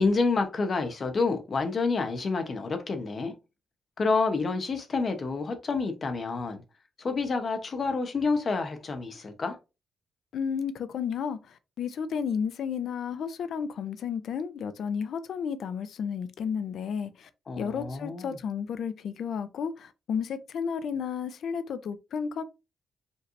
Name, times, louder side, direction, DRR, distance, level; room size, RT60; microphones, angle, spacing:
voice 1, 0.0-3.3 4.0-6.6 7.0-9.6 17.5-18.4, left 4 dB, 35° left, 0.9 m, -28 dB
voice 2, 10.3-17.3 17.6-22.4, left 7 dB, 65° left, 0.5 m, -32 dB
5.3 x 3.3 x 2.6 m
wide cardioid pair, 165°, 0 cm